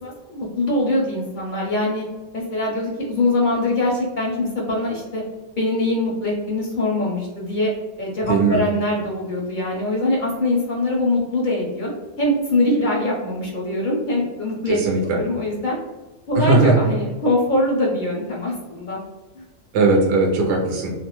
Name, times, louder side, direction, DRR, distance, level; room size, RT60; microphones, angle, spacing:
voice 1, 0.0-2.1 2.3-5.2 5.6-7.7 8.0-11.9 12.2-15.8 16.3-19.0 19.3-19.5, left 1 dB, 55° left, -3 dB, 0.6 m, -23 dB
voice 2, 8.3-8.6 14.7-15.2 16.3-16.7 19.7-20.9, right 3 dB, 70° right, -1 dB, 0.9 m, -18 dB
2.4 x 2.2 x 2.9 m, 1.2 s
omnidirectional pair, 1.3 m